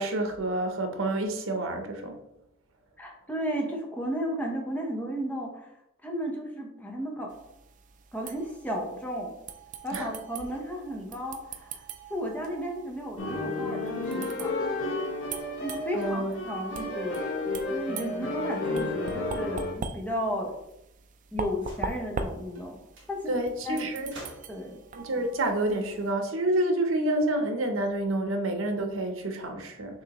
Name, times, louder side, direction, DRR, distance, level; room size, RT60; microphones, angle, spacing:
voice 1, 0.0-2.2 9.9-10.1 15.9-16.4 23.3-24.1 24.9-30.0, right 1 dB, 85° right, 6 dB, 0.7 m, -28 dB
voice 2, 3.0-5.7 6.0-7.3 8.1-9.4 9.8-11.8 12.1-14.5 15.6-17.2 17.7-20.6 21.3-22.7 23.1-23.4 23.6-23.9 24.5-24.8, equal, 10° left, 0 dB, 0.9 m, -34 dB
sound 1, 7.3-26.1, right 4 dB, 40° right, 0.4 m, -42 dB
sound 2, 13.2-19.7, left 2 dB, 90° left, 1.0 m, -32 dB
sound 3, 21.5-22.0 22.5-22.7 22.9-23.1 24.1-24.7 26.0-27.0, right 1 dB, 65° right, 1.3 m, -49 dB
6.4 x 2.7 x 2.9 m, 0.84 s
head